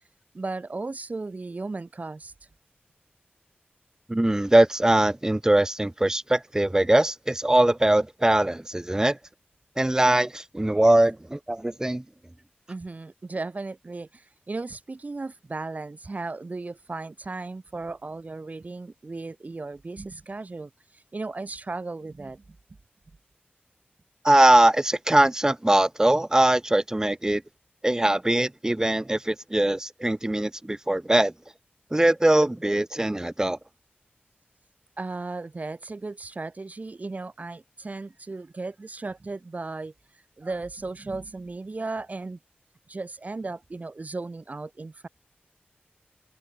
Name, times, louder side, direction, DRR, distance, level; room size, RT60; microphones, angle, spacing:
voice 1, 0.3-2.5 12.7-22.4 35.0-42.4 42.9-45.1, right 3 dB, 45° right, 6.2 m, -36 dB
voice 2, 4.1-9.2 9.8-12.0 24.2-27.4 27.8-31.3 31.9-33.6, right 1 dB, 15° right, 1.3 m, -21 dB
open air
wide cardioid pair, 100°, 4 cm